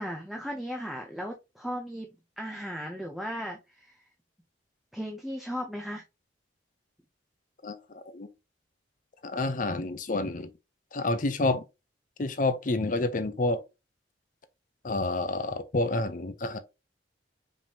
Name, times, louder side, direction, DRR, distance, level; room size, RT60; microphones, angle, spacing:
voice 1, 0.0-2.1 2.4-4.0 4.9-6.0, equal, ahead, 0.6 m, -36 dB
voice 2, 7.6-8.3 9.2-10.5 10.9-11.6 12.2-13.6 14.8-16.6, left 2 dB, 45° left, 0.6 m, -29 dB
5.3 x 3.5 x 2.8 m
head